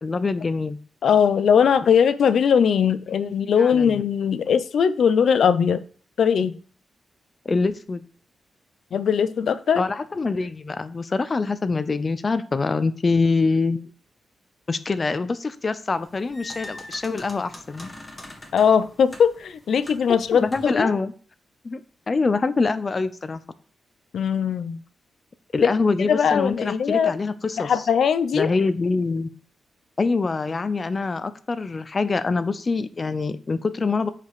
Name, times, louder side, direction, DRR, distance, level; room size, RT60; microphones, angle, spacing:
voice 1, 0.0-0.8 1.8-1.9 3.1-4.0 7.4-8.0 9.7-13.9 14.7-17.9 20.1-21.1 21.6-21.8 22.1-23.4 25.5-27.8 28.3-29.3 30.0-34.1, left 4 dB, 35° left, 0.7 m, -25 dB
voice 2, 1.0-5.8 6.2-6.5 8.9-9.8 18.5-20.9 24.1-24.8 25.6-25.7 26.1-27.1 27.6-28.5, left 7 dB, 75° left, 0.6 m, -20 dB
sound 1, 15.9-20.9, left 1 dB, 15° left, 1.8 m, -43 dB
8.2 x 5.1 x 4.9 m
wide cardioid pair, 125°, 0 cm